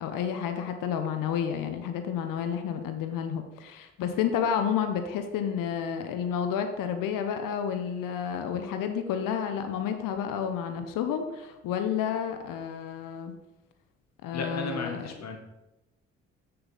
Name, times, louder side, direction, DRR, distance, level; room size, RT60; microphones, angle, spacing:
voice 1, 0.0-13.3 14.2-15.1, left 8 dB, 65° left, 7 dB, 0.8 m, -30 dB
voice 2, 14.3-15.4, left 4 dB, 50° left, 4 dB, 1.3 m, -34 dB
6.9 x 6.7 x 4.0 m, 0.97 s
hypercardioid pair, 45°, 35 cm